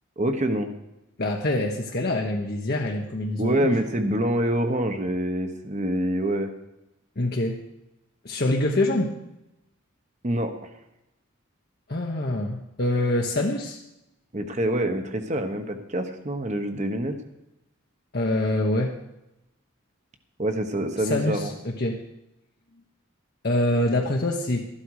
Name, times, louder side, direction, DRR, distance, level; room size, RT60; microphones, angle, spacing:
voice 1, 0.2-0.7 3.4-6.5 10.2-10.7 14.3-17.2 20.4-21.5, right 1 dB, 35° right, 6 dB, 1.1 m, -26 dB
voice 2, 1.2-3.7 7.2-7.6 8.2-9.2 11.9-13.8 18.1-19.0 21.0-22.0 23.4-24.7, left 1 dB, 45° left, 0 dB, 1.0 m, -25 dB
13.0 x 11.5 x 4.8 m, 0.88 s
head